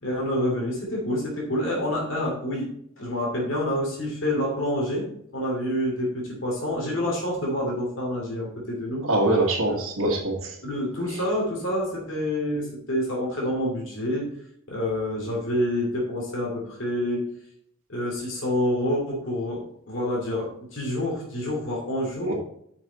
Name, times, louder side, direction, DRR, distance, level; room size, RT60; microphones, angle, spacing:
voice 1, 0.0-2.7 3.0-5.1 5.3-9.0 9.7-9.8 10.6-14.3 14.7-17.2 17.9-22.3, left 1 dB, 65° left, -2 dB, 2.8 m, -27 dB
voice 2, 9.0-10.6 11.1-11.2 22.3-22.4, right 2 dB, 75° right, -6 dB, 1.7 m, -24 dB
9.0 x 6.1 x 4.2 m, 0.70 s
head